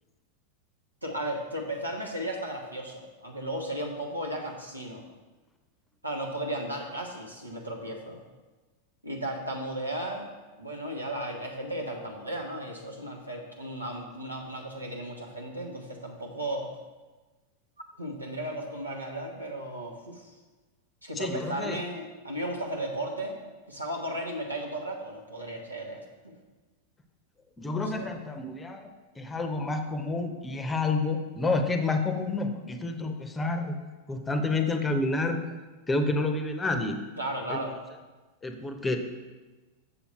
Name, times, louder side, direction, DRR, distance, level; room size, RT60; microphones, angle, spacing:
voice 1, 1.0-5.1 6.0-8.2 9.0-10.3 10.6-16.7 18.0-20.4 21.0-23.4 23.7-26.3 27.9-28.1 37.2-37.8, right 1 dB, 85° right, 0 dB, 1.2 m, -35 dB
voice 2, 21.1-21.8 27.6-28.9 29.2-33.7 34.1-35.4 35.9-37.0 37.5-37.6 38.4-39.0, left 3 dB, 15° left, 6 dB, 0.8 m, -29 dB
7.0 x 6.9 x 4.3 m, 1.2 s
figure-of-eight pair, 90°, 0 cm